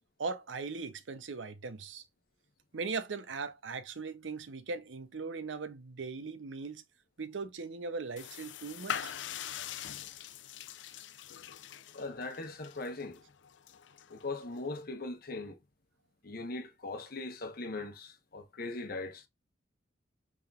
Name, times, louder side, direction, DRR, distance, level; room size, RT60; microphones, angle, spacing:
voice 1, 0.2-2.0 2.7-6.8 7.2-9.1, right 4 dB, 80° right, 0.7 m, -39 dB
sound 1, 8.2-14.8, left 9 dB, 70° left, 0.5 m, -43 dB
voice 2, 11.9-13.2 14.1-15.6 16.2-19.3, left 2 dB, 55° left, 1.1 m, -40 dB
5.7 x 3.7 x 2.4 m
head